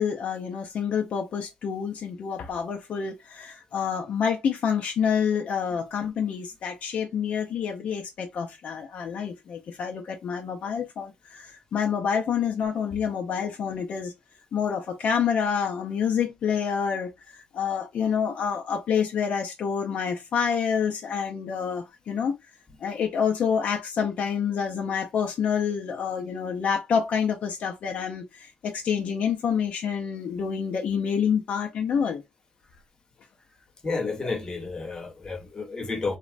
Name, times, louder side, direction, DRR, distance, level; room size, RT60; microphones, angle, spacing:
voice 1, 0.0-14.1 14.5-17.1 17.5-22.4 22.8-32.2, left 7 dB, 60° left, 0.4 m, -27 dB
voice 2, 33.8-36.2, left 3 dB, 25° left, 0.8 m, -31 dB
3.0 x 2.0 x 2.4 m
cardioid pair, 110°, 3 cm